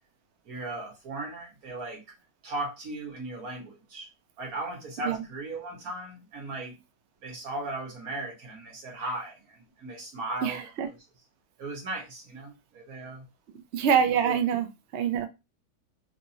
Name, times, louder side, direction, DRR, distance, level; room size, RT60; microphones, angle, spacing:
voice 1, 0.4-2.0 2.4-4.1 4.4-6.8 7.2-10.7 11.6-13.2 14.2-14.4, right 2 dB, 60° right, 1.7 m, -37 dB
voice 2, 10.4-10.9 13.7-15.3, right 8 dB, 85° right, 0.6 m, -26 dB
3.8 x 2.6 x 2.8 m
omnidirectional pair, 1.8 m